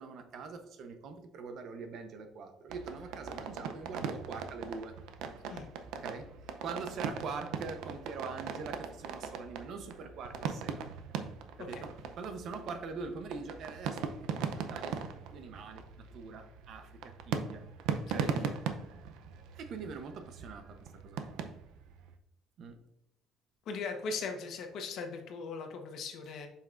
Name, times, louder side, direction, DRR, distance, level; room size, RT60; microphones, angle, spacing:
voice 1, 0.0-4.9 6.0-6.3 6.6-10.9 11.6-11.9 12.2-15.0 15.3-17.7 18.1-18.3 19.5-21.4 22.6-22.8, right 4 dB, 60° right, 7 dB, 0.8 m, -43 dB
sound 1, 2.7-22.1, right 6 dB, 90° right, 0.6 m, -39 dB
voice 2, 18.1-18.5 23.6-26.5, left 4 dB, 65° left, 4 dB, 1.1 m, -39 dB
7.5 x 5.8 x 2.5 m, 0.82 s
cardioid pair, 125°, 0 cm